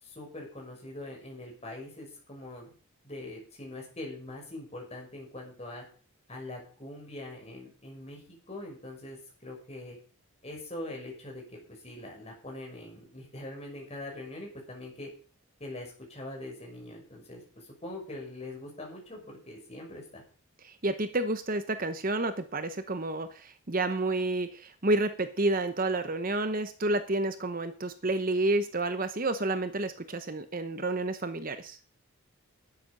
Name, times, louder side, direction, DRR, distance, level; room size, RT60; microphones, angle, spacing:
voice 1, 0.0-2.7 3.0-5.8 6.3-8.2 8.5-10.0 10.4-15.1 15.6-20.2, left 1 dB, 30° left, 0 dB, 6.0 m, -43 dB
voice 2, 20.6-31.8, right 2 dB, 40° right, 10 dB, 0.9 m, -30 dB
12.5 x 10.0 x 5.4 m, 0.41 s
head